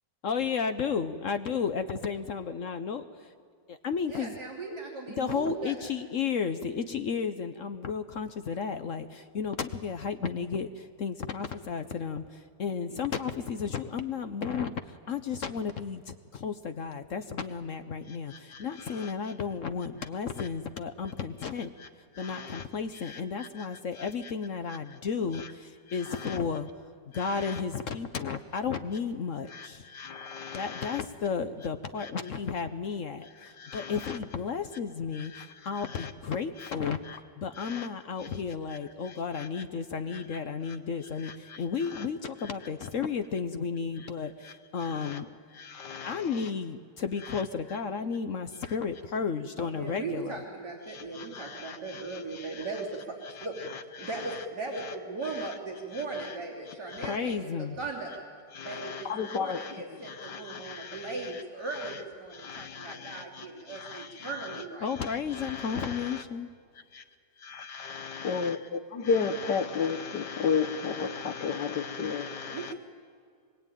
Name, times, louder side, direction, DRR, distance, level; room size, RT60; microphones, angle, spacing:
voice 1, 0.2-3.0 3.7-4.4 5.2-21.7 22.2-26.7 27.1-29.9 30.5-37.0 37.4-45.3 46.0-50.4 57.0-57.8 64.8-66.5, left 6 dB, 55° left, 9 dB, 1.0 m, -33 dB
voice 2, 4.1-5.7 49.6-53.6 54.0-57.5 57.8-58.1 58.6-64.9 72.5-72.7, right 3 dB, 60° right, -4 dB, 3.7 m, -38 dB
voice 3, 18.1-19.1 20.4-20.5 21.8-21.9 22.1-22.6 22.9-23.7 24.0-24.3 25.3-25.5 25.9-26.4 27.1-27.6 29.5-31.0 32.0-32.1 33.4-34.2 35.1-36.1 36.6-36.7 37.0-37.2 37.5-37.9 38.2-38.3 38.7-38.8 39.0-39.6 40.1-40.2 40.7-40.8 41.2-42.1 42.4-42.5 44.0-44.1 44.4-44.5 44.8-45.2 45.5-46.5 47.2-47.4 50.9-52.7 53.4-54.4 54.8-54.9 55.3-55.5 55.9-56.3 56.9-57.2 58.5-61.4 61.7-62.0 62.3-64.6 65.0-66.2 66.9-67.0 67.4-68.6 68.9-72.7, left 6 dB, 70° left, 8 dB, 1.7 m, -36 dB
24.5 x 22.0 x 9.2 m, 2.1 s
omnidirectional pair, 1.9 m